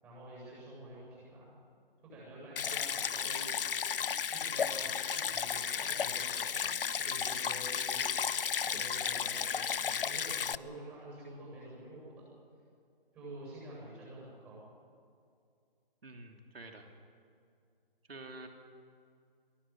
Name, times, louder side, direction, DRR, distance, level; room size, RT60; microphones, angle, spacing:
voice 1, 0.0-1.5 2.0-3.4 4.3-6.7 6.9-8.1 8.5-12.3 13.1-14.6, right 1 dB, 10° right, -6 dB, 7.9 m, -48 dB
Stream, 2.6-10.6, left 7 dB, 65° left, 0.6 m, -33 dB
voice 2, 16.0-16.9 18.1-18.5, right 2 dB, 75° right, 3 dB, 3.0 m, -48 dB
22.5 x 17.5 x 9.0 m, 2.4 s
hypercardioid pair, 170°, 30 cm